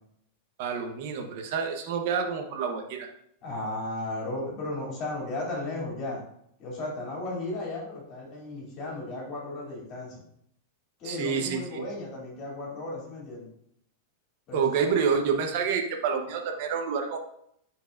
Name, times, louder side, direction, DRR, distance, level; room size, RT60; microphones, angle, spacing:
voice 1, 0.6-3.1 11.0-11.8 14.5-17.2, right 6 dB, 55° right, 3 dB, 1.0 m, -28 dB
voice 2, 3.4-6.2 6.6-10.2 11.0-13.5 14.5-15.0, left 2 dB, 40° left, -3 dB, 2.9 m, -35 dB
10.0 x 4.6 x 2.6 m, 0.72 s
supercardioid pair, 135°, 0 cm